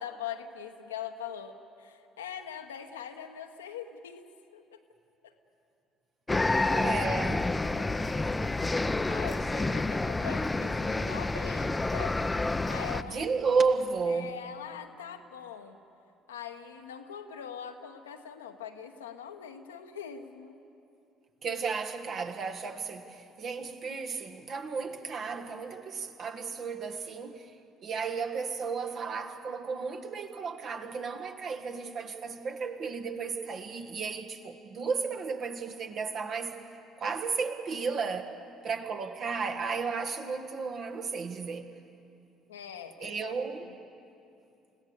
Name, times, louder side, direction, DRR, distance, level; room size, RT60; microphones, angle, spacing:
voice 1, 0.0-4.3 4.5-4.8 5.2-5.3 6.5-8.2 9.1-12.2 12.6-13.3 14.1-15.8 16.3-20.6 42.5-43.8, left 8 dB, 80° left, 1.1 m, -42 dB
sound 1, 6.3-13.0, left 2 dB, 15° left, 0.7 m, -29 dB
voice 2, 6.6-7.4 13.0-14.4 21.4-27.4 27.8-36.6 37.0-38.3 38.6-41.7 43.0-43.7, right 5 dB, 50° right, 1.7 m, -33 dB
29.0 x 16.5 x 6.7 m
figure-of-eight pair, 50°, 0 cm